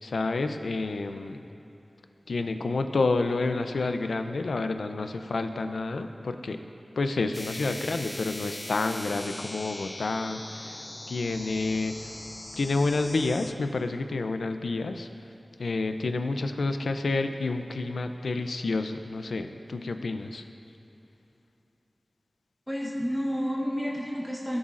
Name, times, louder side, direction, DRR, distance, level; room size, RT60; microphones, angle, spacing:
voice 1, 0.0-1.4 2.3-6.6 7.0-12.1 12.5-15.3 15.6-20.5, left 3 dB, 90° left, 7 dB, 0.5 m, -29 dB
sound 1, 7.3-13.5, left 1 dB, 30° left, 0.5 m, -40 dB
voice 2, 22.7-24.6, equal, 5° right, -3 dB, 1.2 m, -30 dB
17.5 x 7.1 x 2.5 m, 2.9 s
wide cardioid pair, 55°, 0 cm